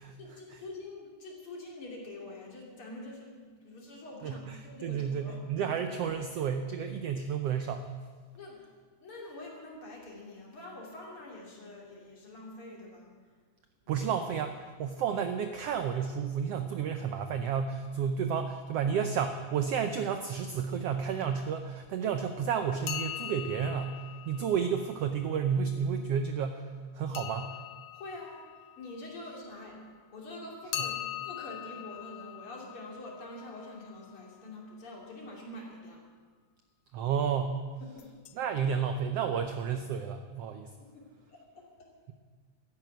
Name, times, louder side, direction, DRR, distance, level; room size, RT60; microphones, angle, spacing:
voice 1, 0.2-5.7 8.3-8.6 9.0-13.1 13.9-14.0 27.9-28.4 28.8-31.0 31.2-36.1 37.8-38.2 40.8-41.9, left 2 dB, 45° left, -2 dB, 3.6 m, -45 dB
voice 2, 4.2-7.9 13.9-27.5 36.9-37.6 38.4-40.7, right 7 dB, 80° right, 7 dB, 1.4 m, -31 dB
sound 1, 22.8-25.6 27.1-29.8 30.7-34.5 38.0-38.3 38.6-38.7 39.4-39.5 39.8-39.9, left 12 dB, 80° left, 1.3 m, -42 dB
13.0 x 10.5 x 9.1 m, 1.5 s
omnidirectional pair, 3.6 m